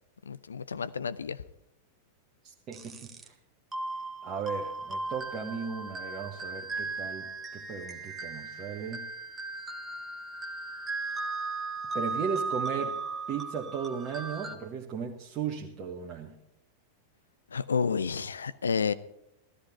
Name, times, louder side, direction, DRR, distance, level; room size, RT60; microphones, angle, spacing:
voice 1, 0.3-1.4 17.5-18.9, left 6 dB, 70° left, 15 dB, 0.6 m, -30 dB
voice 2, 2.4-2.9 3.2-3.3 4.2-9.0 11.9-13.0 13.3-16.3, right 6 dB, 30° right, -1 dB, 1.4 m, -36 dB
sound 1, 2.7-3.3 3.7-14.6, right 3 dB, 15° right, 1.3 m, -37 dB
15.0 x 13.5 x 4.2 m, 0.83 s
figure-of-eight pair, 90°, 0 cm